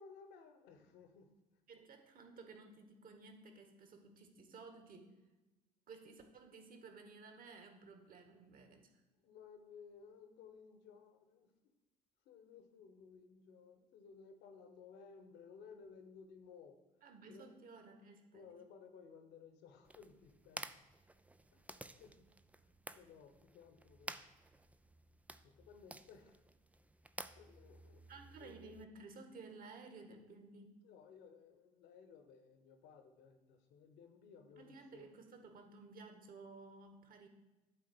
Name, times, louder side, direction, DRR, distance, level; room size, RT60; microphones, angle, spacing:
voice 1, 0.0-1.3 8.7-8.8 9.2-11.7 12.2-16.8 17.3-17.5 18.3-20.8 21.5-21.7 22.0-22.3 22.6-24.2 25.4-26.4 27.4-28.8 30.8-35.1, left 5 dB, 60° left, 7 dB, 1.5 m, -58 dB
voice 2, 1.7-5.1 5.9-8.9 17.0-18.5 28.1-30.7 34.5-37.3, right 3 dB, 45° right, 5 dB, 1.9 m, -55 dB
sound 1, 19.8-28.8, right 2 dB, 5° right, 0.6 m, -53 dB
12.0 x 4.6 x 6.4 m, 1.1 s
figure-of-eight pair, 55°, 20 cm